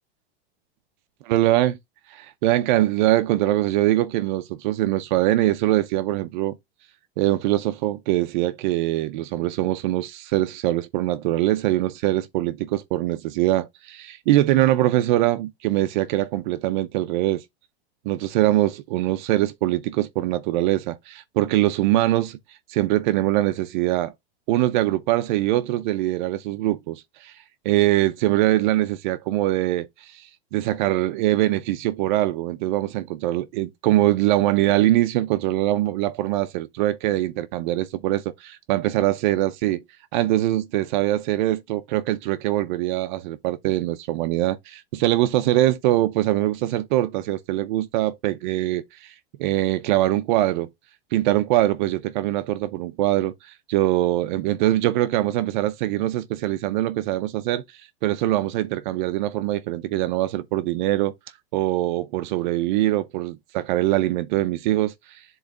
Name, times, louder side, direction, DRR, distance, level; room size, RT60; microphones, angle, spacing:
voice 1, 1.3-1.8 2.1-6.6 7.2-17.4 18.1-22.4 22.7-24.1 24.5-27.3 27.6-39.8 40.1-49.1 49.4-50.7 51.1-61.1 61.5-65.2, right 15 dB, 50° right, 0.6 m, -23 dB
10.5 x 3.9 x 2.5 m
supercardioid pair, 145°, 31 cm